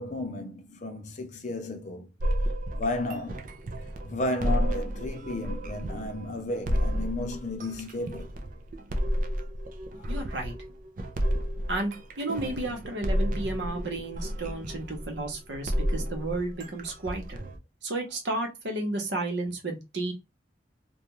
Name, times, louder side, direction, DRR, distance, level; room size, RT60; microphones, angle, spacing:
voice 1, 0.0-2.1 2.7-3.5 4.0-8.3 10.0-10.1, left 2 dB, 40° left, 0.5 m, -33 dB
sound 1, 2.2-17.6, equal, 45° right, 0.4 m, -31 dB
voice 2, 10.1-10.5 11.7-17.4 17.8-20.1, right 2 dB, 70° right, 0.9 m, -32 dB
2.4 x 2.2 x 2.9 m
head